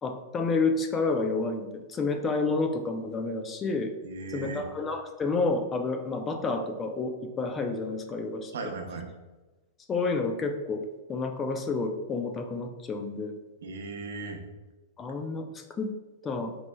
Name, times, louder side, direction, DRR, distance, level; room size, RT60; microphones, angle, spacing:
voice 1, 0.0-3.9 4.3-8.5 9.9-13.3 15.0-15.9 16.2-16.6, left 3 dB, 20° left, 6 dB, 0.4 m, -30 dB
voice 2, 4.0-4.7 8.5-9.1 13.6-14.4, right 3 dB, 85° right, 4 dB, 0.6 m, -37 dB
5.2 x 3.1 x 2.2 m, 1.1 s
hypercardioid pair, 135°, 0 cm